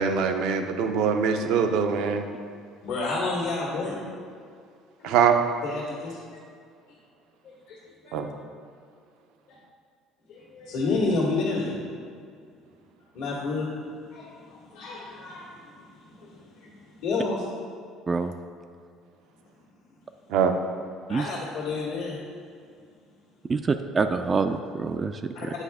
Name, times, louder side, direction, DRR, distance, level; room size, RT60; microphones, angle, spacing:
voice 1, 0.0-2.2 5.0-5.4 8.1-8.3 20.3-20.5, right 6 dB, 75° right, 6 dB, 0.6 m, -23 dB
voice 2, 2.8-4.0 5.0-5.2 5.6-6.2 6.9-7.0 7.4-7.8 8.0-8.2 9.5-9.6 10.3-11.7 13.1-13.7 14.1-17.4 21.1-22.2 25.3-25.5, left 3 dB, 80° left, -8 dB, 1.6 m, -30 dB
voice 3, 23.5-25.5, right 4 dB, 30° right, 7 dB, 0.3 m, -26 dB
8.1 x 4.8 x 3.5 m, 2.2 s
supercardioid pair, 90°, 0 cm